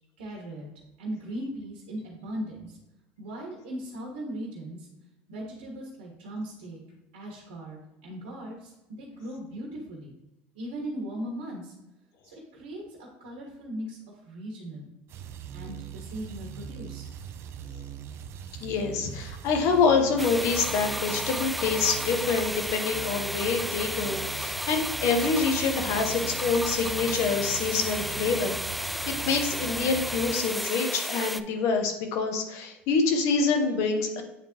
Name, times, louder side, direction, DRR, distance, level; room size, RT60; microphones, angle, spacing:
voice 1, 0.2-0.7 1.0-2.8 3.2-4.9 5.3-6.8 7.1-10.1 10.5-11.7 12.2-14.9 15.5-17.1, right 1 dB, 85° right, -2 dB, 1.5 m, -38 dB
sound 1, 15.1-30.3, right 8 dB, 50° right, 0.6 m, -41 dB
voice 2, 18.6-28.6 29.1-34.2, left 4 dB, 65° left, 5 dB, 1.1 m, -26 dB
sound 2, 20.2-31.4, equal, ahead, 0.3 m, -33 dB
8.4 x 3.7 x 3.0 m, 0.97 s
supercardioid pair, 100°, 6 cm